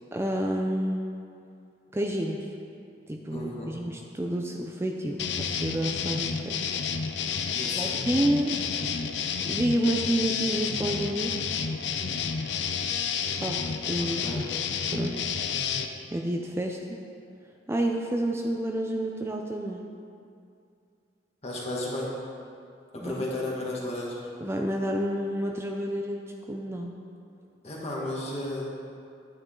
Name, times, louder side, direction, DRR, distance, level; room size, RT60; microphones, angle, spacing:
voice 1, 0.1-1.1 1.9-2.5 3.1-6.7 7.8-8.6 9.5-11.5 13.4-14.3 14.9-15.3 16.1-17.0 17.7-19.8 23.0-23.1 24.4-26.2 26.5-27.0, right 1 dB, 15° right, 1 dB, 0.5 m, -29 dB
voice 2, 3.3-3.8 7.5-8.0 14.0-14.5 21.4-22.1 22.9-24.3 27.6-28.6, left 1 dB, 35° left, -4 dB, 1.8 m, -34 dB
sound 1, 5.2-15.9, left 6 dB, 85° left, 0.5 m, -30 dB
9.6 x 8.7 x 3.8 m, 2.4 s
head